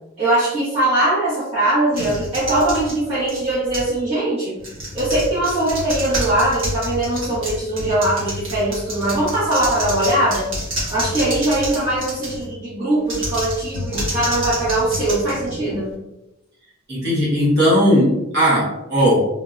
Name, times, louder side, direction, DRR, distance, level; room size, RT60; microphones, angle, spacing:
voice 1, 0.2-4.6 4.9-10.5 10.9-15.9, right 1 dB, 30° right, -14 dB, 1.4 m, -21 dB
sound 1, 1.9-4.0 4.6-12.5 13.0-15.9, equal, 75° right, 1.3 m, -29 dB
voice 2, 16.9-19.3, equal, 55° right, -8 dB, 1.2 m, -17 dB
3.5 x 2.9 x 2.4 m, 0.92 s
head